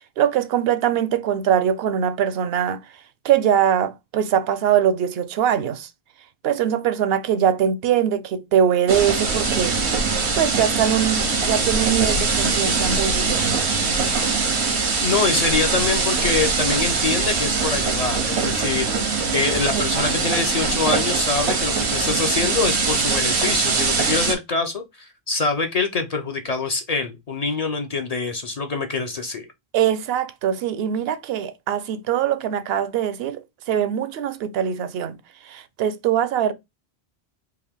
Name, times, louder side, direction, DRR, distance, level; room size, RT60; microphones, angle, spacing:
voice 1, 0.2-2.8 3.2-5.9 6.4-9.8 10.3-13.7 19.7-20.0 29.7-35.2 35.4-36.5, right 9 dB, 70° right, 0.8 m, -22 dB
sound 1, 8.9-24.3, right 4 dB, 90° right, 1.2 m, -22 dB
voice 2, 15.0-29.5, left 4 dB, 45° left, 0.6 m, -25 dB
3.5 x 2.7 x 3.5 m
omnidirectional pair, 1.1 m